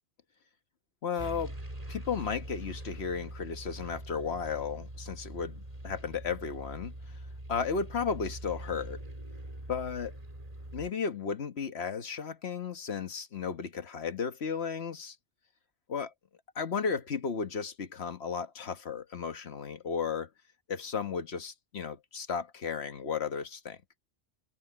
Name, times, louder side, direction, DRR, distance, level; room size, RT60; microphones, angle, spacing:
voice 1, 1.0-1.5 1.9-7.2 7.5-9.0 9.7-10.2 10.7-15.2 15.9-16.1 16.5-20.3 20.7-23.8, left 6 dB, 60° left, 1.4 m, -34 dB
sound 1, 1.2-10.9, right 1 dB, 30° right, 3.6 m, -43 dB
omnidirectional pair, 1.3 m